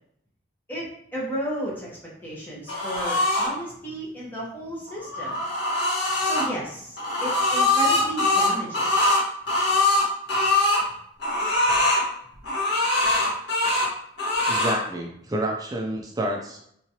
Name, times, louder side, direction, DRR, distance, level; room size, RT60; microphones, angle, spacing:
voice 1, 0.7-5.4 6.2-8.9 11.7-11.8, right 1 dB, 10° left, -5 dB, 0.9 m, -33 dB
sound 1, 2.7-3.5 4.9-6.5 7.0-10.8 11.2-12.0 12.4-13.9 14.2-14.8, left 2 dB, 70° left, 1.3 m, -22 dB
voice 2, 14.5-16.7, right 1 dB, 20° right, 1 dB, 0.3 m, -29 dB
3.7 x 3.0 x 2.8 m, 0.71 s
head